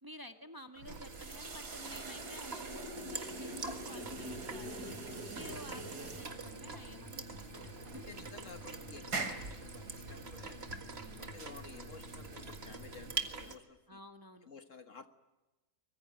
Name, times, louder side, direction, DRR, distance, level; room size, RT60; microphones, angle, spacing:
voice 1, 0.0-8.1 11.0-11.4 13.9-14.5, equal, 15° right, 6 dB, 1.6 m, -52 dB
sound 1, 0.8-13.6, right 4 dB, 40° right, 2.0 m, -45 dB
sound 2, 0.8-13.2, right 2 dB, 90° right, 3.4 m, -45 dB
sound 3, 4.0-13.1, left 2 dB, 20° left, 2.8 m, -53 dB
voice 2, 8.1-10.6 11.2-14.0 14.5-15.1, left 5 dB, 55° left, 8 dB, 1.7 m, -53 dB
24.5 x 22.0 x 9.0 m, 1.1 s
omnidirectional pair, 1.6 m